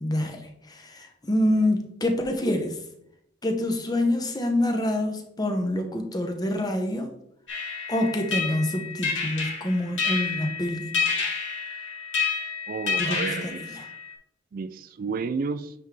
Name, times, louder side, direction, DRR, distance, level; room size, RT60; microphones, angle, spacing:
voice 1, 0.0-2.8 3.4-7.1 7.9-11.3 13.0-13.9, left 1 dB, 20° left, 4 dB, 0.9 m, -27 dB
sound 1, 7.5-14.1, left 5 dB, 90° left, 2.5 m, -29 dB
voice 2, 12.7-13.6 14.5-15.7, right 5 dB, 50° right, 13 dB, 0.3 m, -31 dB
9.3 x 3.7 x 3.3 m, 0.75 s
head